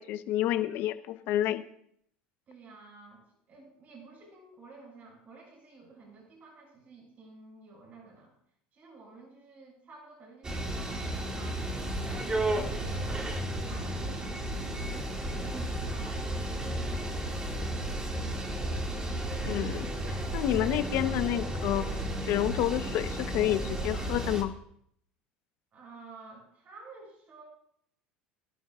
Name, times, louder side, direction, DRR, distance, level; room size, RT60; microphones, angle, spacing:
voice 1, 0.0-1.6 19.4-21.9 22.3-24.5, left 13 dB, 60° left, 10 dB, 1.0 m, -29 dB
voice 2, 2.5-8.3 8.7-13.3 13.6-14.5 14.8-18.1 25.7-27.4, right 3 dB, 40° right, -1 dB, 6.8 m, -52 dB
sound 1, 10.4-24.4, right 1 dB, 20° right, 2.3 m, -33 dB
23.0 x 12.0 x 2.5 m, 0.69 s
supercardioid pair, 100°, 4 cm